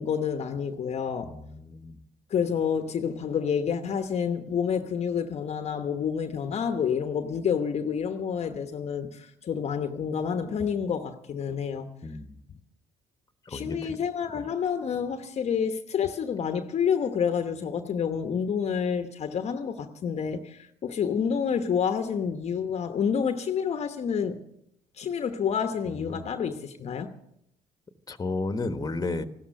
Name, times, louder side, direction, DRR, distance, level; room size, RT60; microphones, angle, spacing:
voice 1, 0.0-1.3 2.3-11.9 13.5-24.4 25.0-27.1, left 7 dB, 50° left, 1.1 m, -28 dB
voice 2, 1.2-2.0 12.0-12.4 13.5-14.0 25.9-26.3 28.1-29.2, left 3 dB, 25° left, 1.4 m, -33 dB
15.5 x 12.5 x 6.5 m
supercardioid pair, 65°, 14 cm